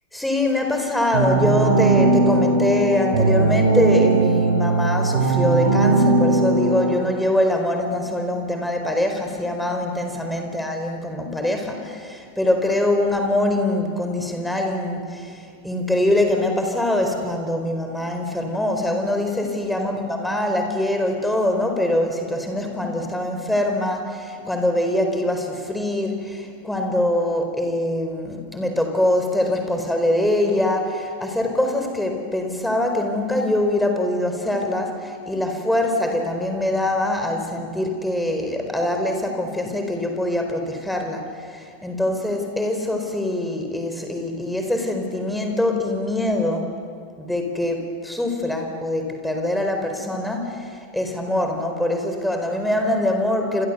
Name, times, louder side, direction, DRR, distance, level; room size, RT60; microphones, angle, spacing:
voice 1, 0.1-46.7 47.2-53.7, left 1 dB, 5° left, 4 dB, 4.5 m, -23 dB
sound 1, 1.1-6.9, right 3 dB, 60° right, 6.4 m, -18 dB
30.0 x 27.5 x 7.0 m, 2.2 s
figure-of-eight pair, 90°, 0 cm